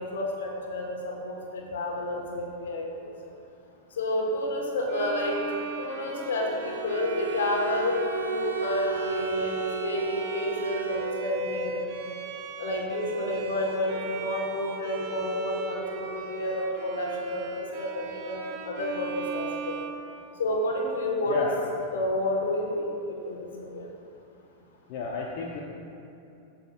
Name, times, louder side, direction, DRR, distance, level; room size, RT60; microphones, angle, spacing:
voice 1, 0.0-3.1 4.0-5.4 5.8-11.8 12.6-19.8 20.4-21.5 21.9-22.9 23.2-23.5 23.7-23.9, left 1 dB, 70° left, 0 dB, 1.5 m, -30 dB
Bowed string instrument, 4.9-20.8, right 5 dB, 50° right, 0.8 m, -38 dB
Bowed string instrument 2, 6.3-11.6, right 6 dB, 85° right, 0.8 m, -34 dB
voice 2, 21.3-21.6 24.9-25.6, left 5 dB, 50° left, -2 dB, 0.8 m, -31 dB
14.5 x 6.1 x 2.4 m, 2.7 s
figure-of-eight pair, 95°, 0 cm